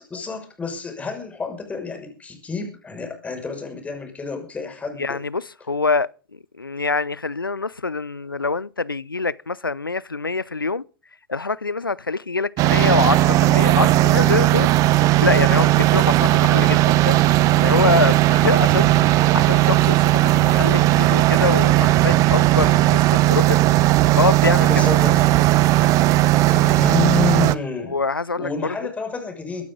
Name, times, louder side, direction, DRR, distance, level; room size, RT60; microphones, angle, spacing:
voice 1, 0.1-5.2 18.6-19.1 24.6-25.4 26.5-28.0 28.4-29.6, left 5 dB, 10° left, 5.8 m, -29 dB
voice 2, 5.0-10.8 11.3-14.7 15.2-23.6 24.1-24.7 27.9-28.7, left 4 dB, 85° left, 0.7 m, -25 dB
sound 1, 12.6-27.6, right 16 dB, 30° right, 1.0 m, -16 dB
24.0 x 12.5 x 3.8 m
figure-of-eight pair, 105°, 11 cm